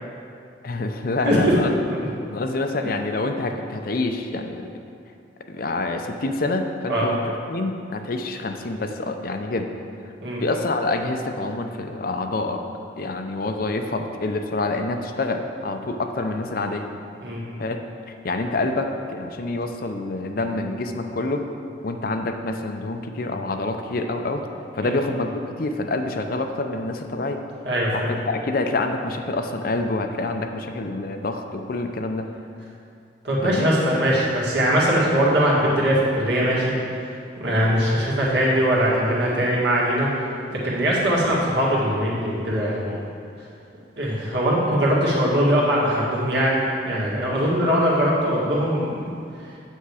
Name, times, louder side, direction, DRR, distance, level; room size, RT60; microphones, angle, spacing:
voice 1, 0.6-1.7 2.3-4.7 5.5-7.2 7.5-9.7 10.4-12.6 13.0-16.9 17.6-17.8 18.1-21.5 21.8-24.4 24.7-25.3 25.6-27.4 27.9-32.3 33.4-33.7, left 2 dB, 50° left, 5 dB, 0.5 m, -27 dB
voice 2, 27.6-28.1 33.2-36.7 37.4-40.1 40.5-42.9 44.0-46.6 46.8-49.1, equal, 60° right, -5 dB, 2.0 m, -21 dB
8.3 x 7.1 x 4.9 m, 2.4 s
head